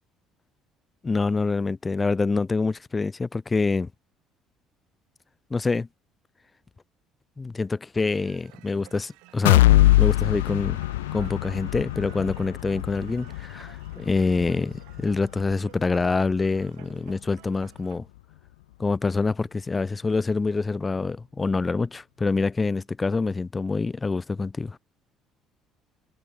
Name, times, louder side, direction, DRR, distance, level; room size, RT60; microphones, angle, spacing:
voice 1, 1.0-3.9 5.5-5.9 7.4-9.6 10.0-10.8 11.1-18.1 18.8-24.8, left 3 dB, 25° left, 0.7 m, -26 dB
sound 1, 8.2-18.0, right 27 dB, 75° right, 6.8 m, -53 dB
sound 2, 9.5-17.2 17.6-17.8 18.2-18.3, left 17 dB, 85° left, 0.5 m, -24 dB
open air
hypercardioid pair, 60°, 0 cm